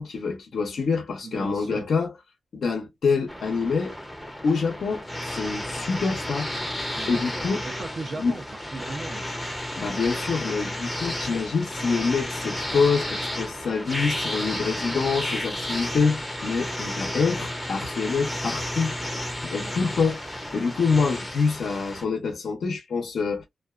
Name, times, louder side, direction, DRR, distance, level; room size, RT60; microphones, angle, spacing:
voice 1, 0.0-2.1 2.5-4.0 4.4-5.1 5.3-6.5 7.1-7.6 8.2-8.3 9.8-18.9 19.4-23.5, left 5 dB, 75° left, 0.8 m, -26 dB
voice 2, 1.2-1.9 6.9-8.4 8.7-9.3 19.6-19.8, right 3 dB, 50° right, 0.6 m, -37 dB
sound 1, 3.3-22.0, left 1 dB, 5° left, 0.7 m, -32 dB
2.4 x 2.3 x 2.4 m
wide cardioid pair, 145°, 0 cm